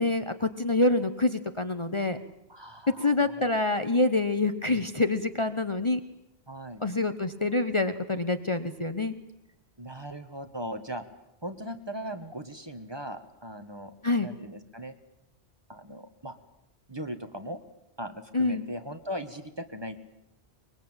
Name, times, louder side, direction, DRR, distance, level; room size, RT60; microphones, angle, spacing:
voice 1, 0.0-2.2 2.9-6.0 6.8-9.2 14.0-14.3 18.3-18.7, left 2 dB, 30° left, 8 dB, 1.0 m, -26 dB
voice 2, 2.5-3.8 6.5-6.8 9.8-11.0 11.4-13.9 14.2-14.9 15.7-16.3 16.9-17.6 18.0-20.0, equal, 25° right, 8 dB, 1.4 m, -39 dB
24.0 x 22.0 x 8.9 m, 0.85 s
omnidirectional pair, 1.1 m